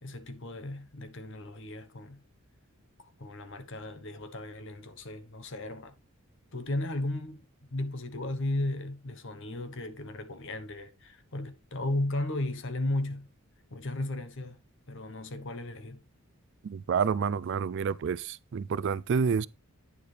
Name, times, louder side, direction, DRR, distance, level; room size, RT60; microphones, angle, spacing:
voice 1, 0.0-2.2 3.0-6.0 6.5-13.3 13.7-14.6 14.9-16.0, left 1 dB, 60° left, 1.1 m, -35 dB
voice 2, 16.6-19.5, right 6 dB, 55° right, 0.3 m, -29 dB
9.5 x 6.8 x 3.3 m
head